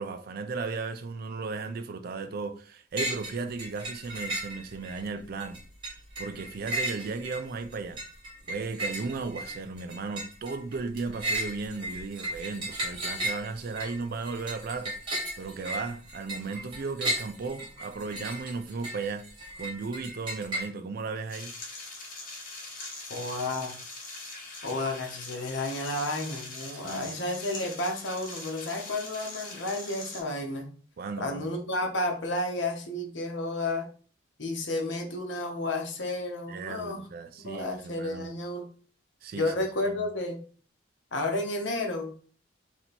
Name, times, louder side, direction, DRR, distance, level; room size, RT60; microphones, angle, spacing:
voice 1, 0.0-5.6 6.2-8.0 8.5-19.3 19.6-21.5 26.7-27.1 31.0-31.5 36.5-38.3 39.2-39.5 39.9-40.0, right 4 dB, 55° right, 0.4 m, -35 dB
sound 1, 3.0-5.0 5.4-20.7, right 1 dB, 25° right, 1.6 m, -35 dB
sound 2, 21.3-30.2, left 2 dB, 50° left, 1.4 m, -42 dB
voice 2, 23.1-23.7 24.6-30.7 31.2-33.9 34.4-37.0 37.4-38.7 39.3-40.4 41.1-42.1, left 2 dB, 70° left, 1.0 m, -31 dB
4.0 x 3.0 x 4.2 m
head